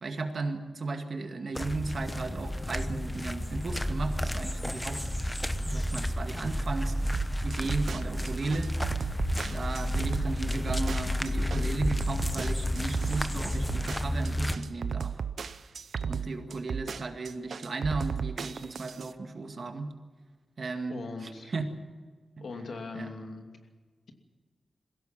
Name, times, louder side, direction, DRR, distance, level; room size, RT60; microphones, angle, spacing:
voice 1, 0.0-5.0 5.6-7.0 7.4-8.7 9.5-15.2 16.0-19.9 20.6-20.9 21.5-21.7 22.9-23.1, right 3 dB, 50° right, 5 dB, 2.0 m, -35 dB
sound 1, 1.6-14.6, left 1 dB, 15° left, 1.0 m, -31 dB
sound 2, 7.1-19.1, right 6 dB, 75° right, 0.7 m, -35 dB
voice 2, 20.9-21.5 22.4-23.5, left 3 dB, 70° left, 4 dB, 2.7 m, -40 dB
21.5 x 16.5 x 7.6 m, 1.4 s
wide cardioid pair, 130°, 0 cm